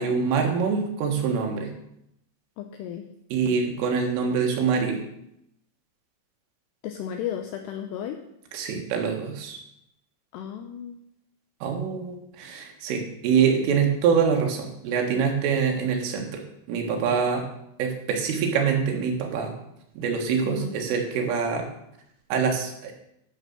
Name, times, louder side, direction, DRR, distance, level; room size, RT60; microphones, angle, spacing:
voice 1, 0.0-1.7 3.3-5.0 8.5-9.6 11.6-16.4 16.7-17.4 17.8-19.5 20.0-21.7 22.3-22.9, right 6 dB, 80° right, 2 dB, 4.3 m, -25 dB
voice 2, 2.6-3.1 6.8-8.2 10.3-11.0 20.5-20.7, left 9 dB, 85° left, 6 dB, 2.4 m, -34 dB
12.0 x 6.6 x 6.7 m, 0.79 s
omnidirectional pair, 5.7 m